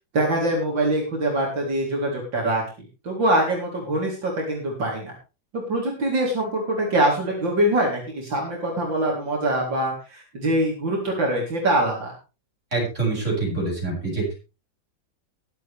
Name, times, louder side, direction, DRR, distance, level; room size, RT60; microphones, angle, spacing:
voice 1, 0.1-2.6 3.0-5.1 5.5-12.1, right 1 dB, 75° right, -2 dB, 4.4 m, -24 dB
voice 2, 12.7-14.3, right 3 dB, 40° right, -2 dB, 8.4 m, -25 dB
22.5 x 8.4 x 3.5 m, 0.32 s
omnidirectional pair, 2.0 m